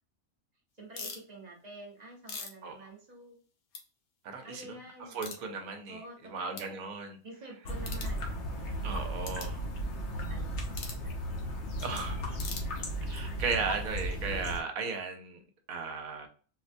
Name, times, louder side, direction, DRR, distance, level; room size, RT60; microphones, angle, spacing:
voice 1, 0.8-3.4 4.4-6.9 7.2-9.3 10.2-11.2, right 1 dB, 35° right, -1 dB, 0.9 m, -49 dB
sound 1, 0.9-1.2 1.9-3.4 3.7-3.8 4.3-4.4 5.2-5.4 6.0-6.1 6.5-6.7 7.8-8.1 9.2-9.5 10.7-11.0 12.3-13.1, left 4 dB, 75° left, 1.2 m, -42 dB
voice 2, 4.2-4.6 5.0-7.2 8.8-9.6 11.8-12.4 13.0-16.3, right 5 dB, 75° right, 5 dB, 1.2 m, -36 dB
sound 2, 7.6-14.6, equal, 60° left, 0.9 m, -35 dB
4.2 x 2.1 x 2.5 m, 0.39 s
omnidirectional pair, 1.5 m